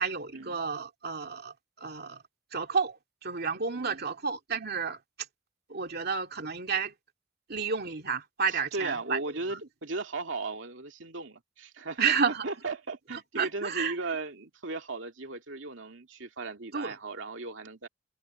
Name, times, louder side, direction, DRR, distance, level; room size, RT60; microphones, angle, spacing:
voice 1, 0.0-2.2 2.5-5.0 5.7-6.9 7.5-9.2 9.5-9.6 12.0-12.4 13.3-14.0 16.7-16.9, right 5 dB, 55° right, 2.4 m, -31 dB
voice 2, 3.7-4.1 8.5-17.9, right 3 dB, 70° right, 2.7 m, -37 dB
head